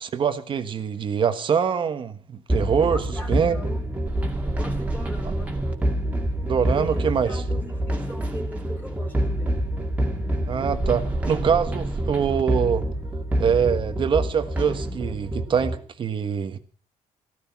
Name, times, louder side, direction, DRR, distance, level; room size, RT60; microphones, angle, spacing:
voice 1, 0.0-3.0 3.3-3.6 6.4-7.3 10.5-12.8 13.4-16.6, right 7 dB, 40° right, 9 dB, 1.3 m, -24 dB
sound 1, 2.5-15.8, right 1 dB, 10° right, 2.4 m, -27 dB
voice 2, 2.9-3.9 4.6-5.6 6.7-9.6, equal, 15° left, -2 dB, 3.5 m, -39 dB
15.5 x 14.5 x 5.9 m, 0.43 s
cardioid pair, 155°, 13 cm